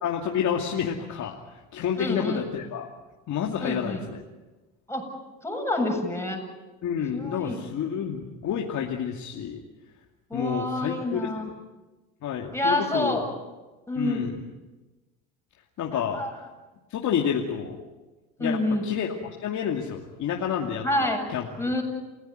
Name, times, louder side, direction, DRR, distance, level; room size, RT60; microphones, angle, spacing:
voice 1, 0.0-2.9 3.3-4.2 6.8-9.6 10.3-11.3 12.2-13.2 14.0-14.3 15.8-16.2 16.9-17.8 18.4-21.5, left 8 dB, 60° left, 1 dB, 2.6 m, -29 dB
voice 2, 2.0-2.4 3.6-4.1 4.9-5.0 5.4-6.4 7.1-7.6 10.3-11.5 12.5-13.3 13.9-14.3 15.9-16.3 18.4-18.9 20.8-21.2 21.6-21.8, left 1 dB, 10° left, 2 dB, 7.9 m, -27 dB
29.0 x 16.5 x 9.3 m, 1.2 s
supercardioid pair, 85°, 33 cm